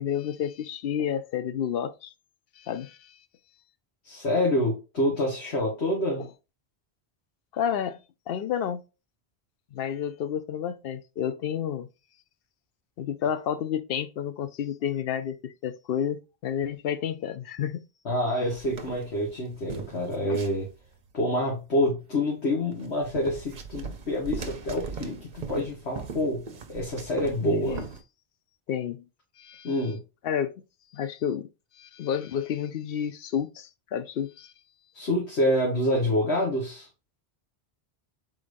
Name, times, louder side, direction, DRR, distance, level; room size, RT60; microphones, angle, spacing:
voice 1, 0.0-2.1 2.6-3.2 7.5-8.0 8.3-8.8 9.7-11.9 13.0-17.8 27.4-27.8 28.7-29.0 29.4-29.7 30.2-30.5 30.9-31.5 31.8-34.5, left 9 dB, 65° left, 0.8 m, -30 dB
voice 2, 4.0-6.2 18.1-20.7 21.1-26.4 26.7-27.8 29.6-30.0 34.9-36.9, left 1 dB, 85° left, 1.7 m, -27 dB
sound 1, 18.5-21.0 22.7-28.0, right 5 dB, 50° right, 0.8 m, -39 dB
4.8 x 3.9 x 2.5 m
omnidirectional pair, 1.1 m